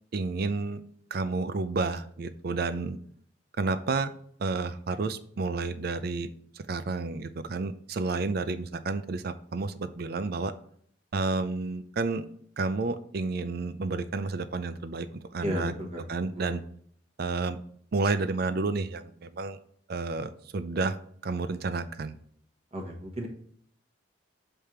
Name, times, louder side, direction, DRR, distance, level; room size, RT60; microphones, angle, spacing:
voice 1, 0.1-0.8 1.1-3.0 3.6-4.1 4.4-6.3 6.6-10.5 11.1-12.3 12.6-15.7 16.1-16.6 17.2-17.6 17.9-19.6 19.9-21.0 21.2-22.2, right 3 dB, 50° right, 13 dB, 0.5 m, -30 dB
voice 2, 15.4-16.0 16.3-16.6 22.7-23.3, equal, 35° right, 1 dB, 1.2 m, -34 dB
7.3 x 3.4 x 4.5 m, 0.62 s
head